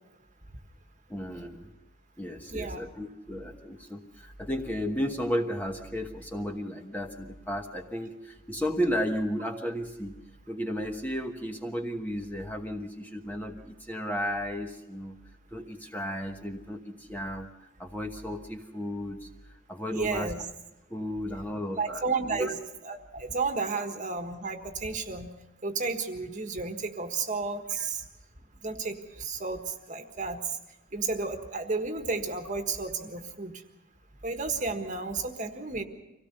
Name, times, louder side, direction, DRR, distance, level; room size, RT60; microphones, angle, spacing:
voice 1, 1.1-1.7 2.2-10.2 10.5-15.2 15.5-17.5 17.8-19.3 19.7-20.3 20.9-22.5 27.8-27.9, equal, 10° left, 3 dB, 1.1 m, -34 dB
voice 2, 2.5-2.8 19.9-20.4 21.8-22.5 22.8-25.3 25.6-28.0 28.6-30.6 30.9-33.5 34.2-35.8, right 4 dB, 35° right, 6 dB, 1.5 m, -32 dB
25.0 x 17.5 x 6.8 m, 0.97 s
head